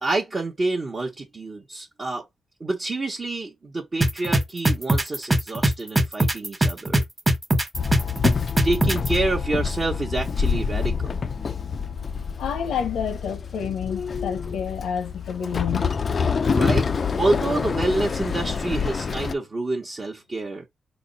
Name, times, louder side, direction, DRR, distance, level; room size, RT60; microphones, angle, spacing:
voice 1, 0.0-2.3 2.6-7.0 8.6-11.1 13.7-13.8 16.5-16.9 17.2-20.7, right 2 dB, 35° right, 0.9 m, -27 dB
sound 1, 4.0-9.1, right 1 dB, 20° right, 1.2 m, -20 dB
Walk footsteps / Chatter / Hiss, 7.7-19.3, left 5 dB, 50° left, 0.3 m, -26 dB
voice 2, 12.4-15.9, left 7 dB, 90° left, 0.8 m, -29 dB
4.2 x 2.0 x 3.9 m
cardioid pair, 75°, 0 cm